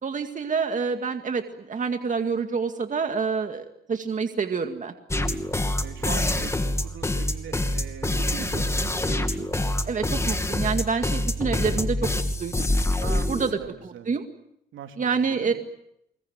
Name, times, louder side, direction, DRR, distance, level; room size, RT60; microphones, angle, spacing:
voice 1, 0.0-4.9 9.9-12.7 13.3-13.5 13.8-14.2 15.0-15.5, right 5 dB, 40° right, 6 dB, 2.1 m, -27 dB
sound 1, 5.1-13.5, left 1 dB, 15° left, 2.6 m, -25 dB
voice 2, 5.1-5.5 5.8-9.5 13.0-14.1 14.7-15.5, right 8 dB, 75° right, 5 dB, 3.8 m, -40 dB
25.0 x 22.0 x 9.4 m, 0.77 s
cardioid pair, 90°, 20 cm